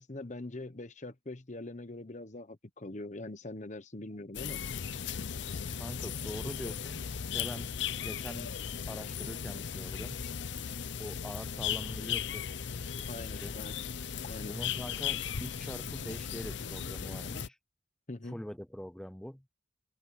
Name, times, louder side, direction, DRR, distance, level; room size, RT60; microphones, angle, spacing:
voice 1, 0.0-4.6 6.4-6.5 13.1-13.8 14.2-14.6 18.1-18.4, left 2 dB, 40° left, 1.1 m, -43 dB
sound 1, 4.3-17.5, left 7 dB, 65° left, 0.6 m, -37 dB
voice 2, 5.8-7.7 8.0-8.5 8.9-10.3 11.0-12.5 13.1-13.5 14.5-17.6 18.2-19.4, equal, 5° left, 0.4 m, -43 dB
head